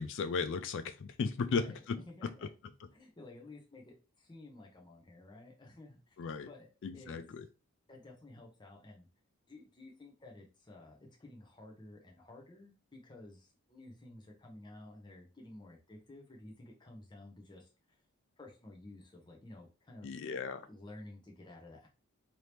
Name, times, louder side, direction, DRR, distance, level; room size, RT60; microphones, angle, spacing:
voice 1, 0.0-2.3 6.2-6.5 6.8-7.5 20.0-20.7, left 5 dB, 55° left, 0.3 m, -36 dB
voice 2, 1.4-1.7 2.0-2.5 2.9-6.2 6.5-7.1 7.9-9.1 9.5-18.0 18.4-20.1 20.7-21.9, left 2 dB, 20° left, 0.7 m, -53 dB
2.9 x 2.7 x 3.3 m
head